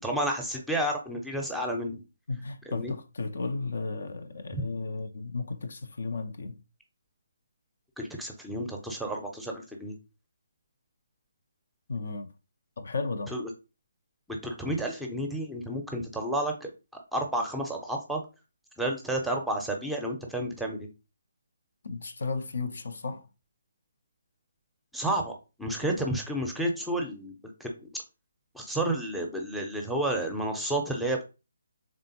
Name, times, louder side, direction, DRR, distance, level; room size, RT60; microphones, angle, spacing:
voice 1, 0.0-2.0 2.7-2.9 4.5-4.6 8.0-9.9 13.3-13.5 14.3-16.7 17.1-18.2 18.8-20.9 24.9-27.3 27.6-27.9 28.5-31.3, right 1 dB, ahead, 0.6 m, -31 dB
voice 2, 2.3-6.6 11.9-12.3 12.8-13.4 21.8-23.3, left 3 dB, 60° left, 0.4 m, -34 dB
3.6 x 3.4 x 2.8 m
figure-of-eight pair, 145°, 0 cm